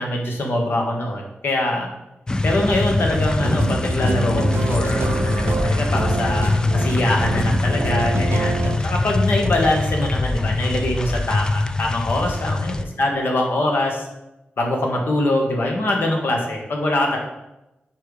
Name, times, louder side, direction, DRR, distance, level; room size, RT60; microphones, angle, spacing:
voice 1, 0.0-1.9 2.4-14.1 14.6-17.2, left 1 dB, 70° left, 1 dB, 1.4 m, -23 dB
sound 1, 2.3-12.8, left 2 dB, 20° left, 0.4 m, -23 dB
sound 2, 3.3-8.8, right 4 dB, 90° right, 0.5 m, -26 dB
5.1 x 4.5 x 4.8 m, 0.93 s
wide cardioid pair, 100°, 4 cm